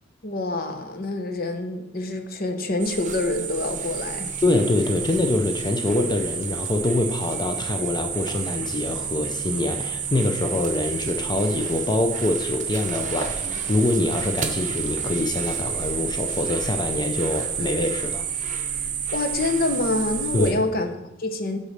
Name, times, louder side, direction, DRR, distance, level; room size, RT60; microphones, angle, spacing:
voice 1, 0.2-4.4 19.1-21.6, left 2 dB, 50° left, 7 dB, 0.8 m, -26 dB
sound 1, 2.8-20.5, right 7 dB, 40° right, 0.8 m, -30 dB
voice 2, 4.4-18.3 20.3-20.6, left 2 dB, 20° left, 5 dB, 0.5 m, -25 dB
8.4 x 4.0 x 6.4 m, 0.94 s
head